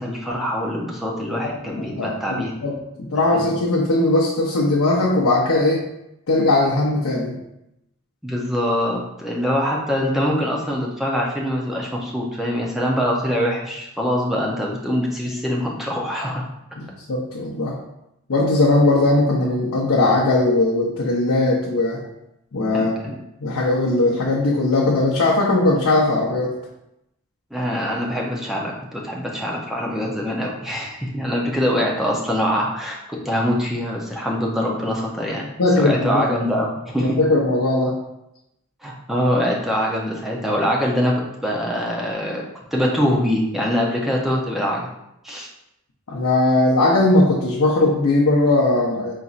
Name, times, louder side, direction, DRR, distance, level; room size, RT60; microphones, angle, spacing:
voice 1, 0.0-2.5 3.3-3.5 8.2-16.5 22.7-23.2 27.5-33.0 33.2-35.4 35.8-37.2 38.8-41.1 41.4-42.4 42.7-44.9 45.2-45.5, equal, ahead, -3 dB, 0.5 m, -23 dB
voice 2, 1.8-5.8 6.3-7.3 16.8-17.8 18.3-22.0 22.5-23.1 23.4-26.6 35.6-36.3 37.0-38.0 46.1-49.1, left 2 dB, 85° left, -4 dB, 0.7 m, -19 dB
4.2 x 4.0 x 2.4 m, 0.85 s
head